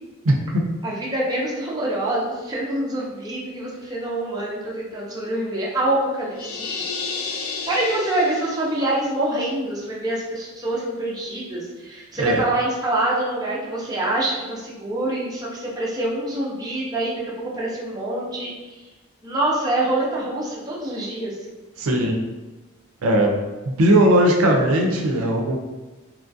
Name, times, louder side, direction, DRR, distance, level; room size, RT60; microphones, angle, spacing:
voice 1, 0.8-6.7 7.0-7.2 7.5-18.8 19.2-21.4, right 1 dB, 20° right, -5 dB, 0.5 m, -26 dB
sound 1, 6.4-8.9, left 5 dB, 70° left, 0.4 m, -31 dB
voice 2, 21.8-22.2 23.0-23.3 23.7-25.6, right 1 dB, 80° right, 2 dB, 0.5 m, -18 dB
3.0 x 2.4 x 2.6 m, 1.2 s
head